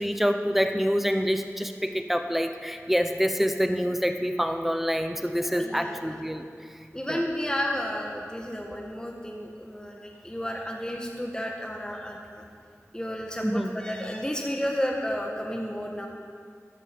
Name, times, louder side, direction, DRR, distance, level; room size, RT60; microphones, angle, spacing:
voice 1, 0.0-6.4 7.1-7.2 13.4-13.8, equal, 5° right, 7 dB, 0.9 m, -26 dB
voice 2, 5.4-6.2 6.9-12.4 12.9-16.1, equal, 15° left, 0 dB, 1.5 m, -32 dB
14.5 x 10.5 x 5.3 m, 2.2 s
wide cardioid pair, 40°, 5 cm